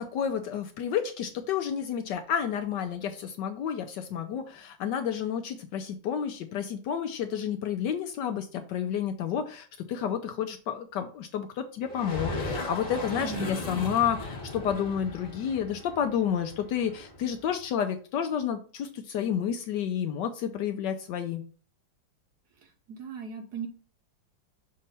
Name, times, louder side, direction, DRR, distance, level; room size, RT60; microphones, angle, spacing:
voice 1, 0.0-21.4, left 8 dB, 70° left, 7 dB, 1.1 m, -30 dB
sound 1, 11.8-17.5, left 2 dB, 30° left, 1.5 m, -37 dB
voice 2, 13.2-13.9 23.0-23.7, right 4 dB, 65° right, 5 dB, 1.1 m, -36 dB
6.3 x 2.8 x 5.4 m, 0.41 s
omnidirectional pair, 2.2 m